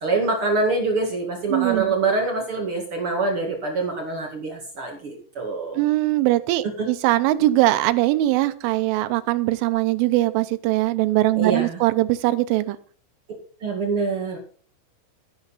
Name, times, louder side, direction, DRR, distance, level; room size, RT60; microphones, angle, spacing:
voice 1, 0.0-5.8 6.8-6.9 11.4-11.8 13.6-14.4, right 3 dB, 60° right, 2 dB, 1.4 m, -25 dB
voice 2, 1.5-1.9 5.8-12.8, right 17 dB, 80° right, 11 dB, 3.3 m, -21 dB
13.5 x 11.0 x 4.1 m, 0.43 s
omnidirectional pair, 5.7 m